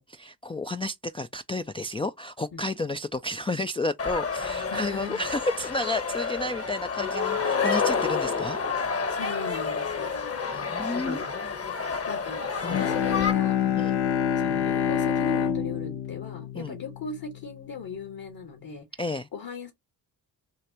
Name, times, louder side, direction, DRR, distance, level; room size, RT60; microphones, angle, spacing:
voice 1, 0.0-9.0 10.5-11.2 12.6-12.8 13.8-14.0 16.6-16.7 19.0-19.3, left 2 dB, 15° left, 0.3 m, -31 dB
sound 1, 4.0-13.3, left 5 dB, 35° left, 1.2 m, -29 dB
voice 2, 4.7-5.2 9.1-10.1 10.8-11.3 11.8-13.9 14.3-19.7, left 5 dB, 60° left, 1.8 m, -39 dB
Bowed string instrument, 12.6-17.5, left 9 dB, 80° left, 0.8 m, -27 dB
6.5 x 2.5 x 2.9 m
cardioid pair, 65°, 39 cm